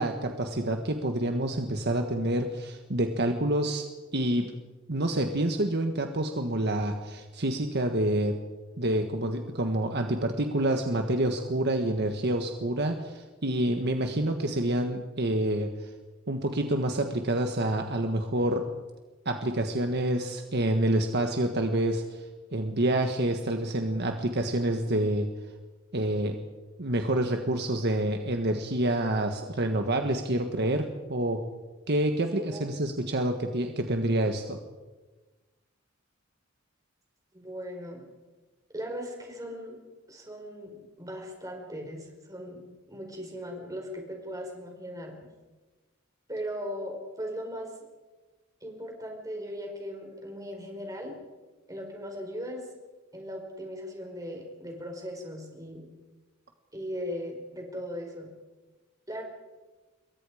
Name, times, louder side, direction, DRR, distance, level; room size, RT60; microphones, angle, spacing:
voice 1, 0.0-4.5 4.9-8.4 8.8-15.9 16.3-18.7 19.2-22.2 22.5-25.3 25.9-26.4 26.8-31.5 31.9-34.6, right 1 dB, 55° right, 5 dB, 1.6 m, -28 dB
voice 2, 37.3-38.0 38.7-39.8 40.1-45.2 46.3-47.7 48.6-51.2 51.7-52.7 53.1-55.9 56.7-58.3 59.1-59.2, equal, 15° right, 1 dB, 5.2 m, -38 dB
27.0 x 22.5 x 5.1 m, 1.2 s
head